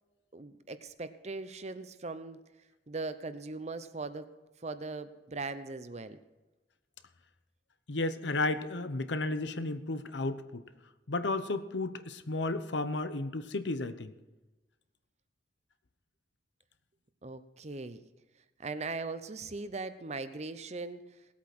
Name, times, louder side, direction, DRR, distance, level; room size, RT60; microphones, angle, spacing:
voice 1, 0.3-2.4 2.9-4.3 4.6-6.2 17.2-18.0 18.6-21.0, right 3 dB, 40° right, 12 dB, 0.8 m, -39 dB
voice 2, 7.9-10.6 11.1-14.1, left 2 dB, 80° left, 11 dB, 1.0 m, -33 dB
18.0 x 8.5 x 6.1 m, 1.1 s
head